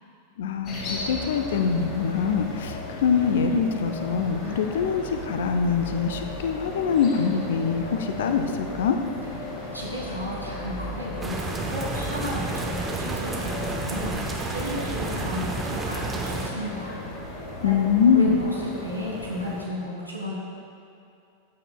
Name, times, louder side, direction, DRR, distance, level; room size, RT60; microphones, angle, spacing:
voice 1, 0.4-9.0 17.6-18.4, left 6 dB, 60° left, 6 dB, 0.6 m, -24 dB
sound 1, 0.6-19.7, left 1 dB, 30° left, 1.9 m, -36 dB
voice 2, 9.4-17.0 17.3-17.7 18.1-20.3, left 1 dB, 90° right, -5 dB, 2.1 m, -34 dB
sound 2, 11.2-16.5, right 3 dB, 15° right, 0.9 m, -31 dB
14.0 x 8.6 x 2.3 m, 2.6 s
figure-of-eight pair, 90°, 0 cm